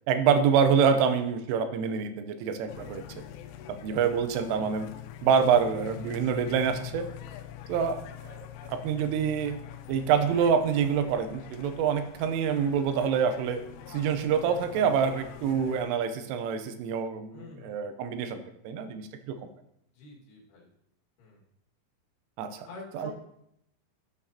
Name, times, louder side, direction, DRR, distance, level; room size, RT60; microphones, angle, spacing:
voice 1, 0.1-3.0 3.7-4.9 5.2-7.1 7.7-9.6 9.9-13.6 13.9-19.4 22.4-22.7 22.9-23.1, right 7 dB, 85° right, 9 dB, 3.3 m, -26 dB
sound 1, 2.7-15.8, left 11 dB, 85° left, 3.1 m, -44 dB
voice 2, 4.5-4.9 17.3-17.8 19.9-20.7 21.2-21.4 22.7-23.1, left 2 dB, 60° left, -3 dB, 3.6 m, -46 dB
12.5 x 8.8 x 2.8 m, 0.76 s
omnidirectional pair, 5.7 m